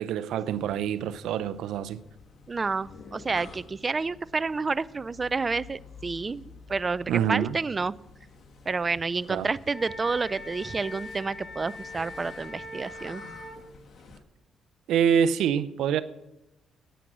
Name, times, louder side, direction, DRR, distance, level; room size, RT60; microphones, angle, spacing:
voice 1, 0.0-2.0 7.1-7.6 9.3-9.5 14.9-16.0, right 8 dB, 80° right, 0.6 m, -26 dB
sound 1, 0.5-14.2, left 4 dB, 60° left, 1.7 m, -50 dB
voice 2, 2.5-7.9 8.7-13.2, right 4 dB, 30° right, 0.4 m, -29 dB
Wind instrument woodwind instrument, 9.7-13.6, left 2 dB, 35° left, 4.7 m, -42 dB
10.0 x 9.2 x 6.1 m
cardioid pair, 80°, 0 cm